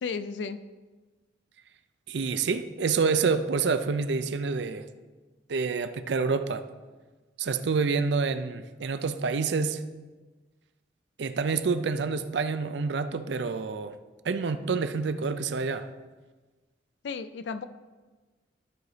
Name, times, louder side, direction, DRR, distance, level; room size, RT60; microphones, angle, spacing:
voice 1, 0.0-0.6 17.0-17.6, left 5 dB, 70° left, 0.4 m, -33 dB
voice 2, 2.1-4.9 5.5-6.6 7.4-9.8 11.2-14.0 14.2-15.9, right 4 dB, 70° right, 0.5 m, -27 dB
12.5 x 4.9 x 4.0 m
head